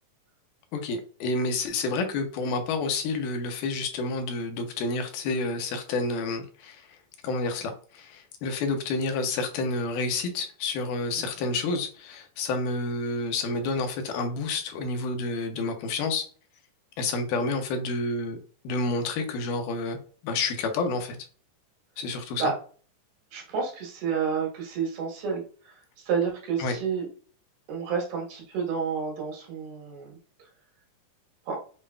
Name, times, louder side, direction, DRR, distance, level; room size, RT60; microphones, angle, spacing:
voice 1, 0.7-6.9 7.2-16.3 17.0-18.4 18.6-20.0 20.2-21.2 22.0-22.5 26.6-26.8, left 3 dB, 85° left, 5 dB, 2.3 m, -29 dB
voice 2, 23.3-27.1 27.7-30.2 31.5-31.6, right 6 dB, 80° right, -1 dB, 2.9 m, -30 dB
7.2 x 2.5 x 2.2 m, 0.41 s
omnidirectional pair, 3.7 m